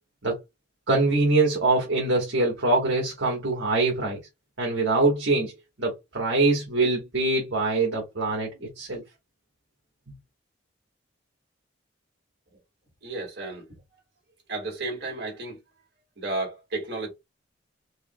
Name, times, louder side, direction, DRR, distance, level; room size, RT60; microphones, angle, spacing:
voice 1, 0.9-4.2 4.6-5.5 5.8-8.5 8.8-9.0, right 2 dB, 75° right, 1.4 m, -23 dB
voice 2, 13.0-13.6 14.5-15.6 16.2-17.1, right 2 dB, 55° right, 2.0 m, -32 dB
4.7 x 2.9 x 2.3 m
head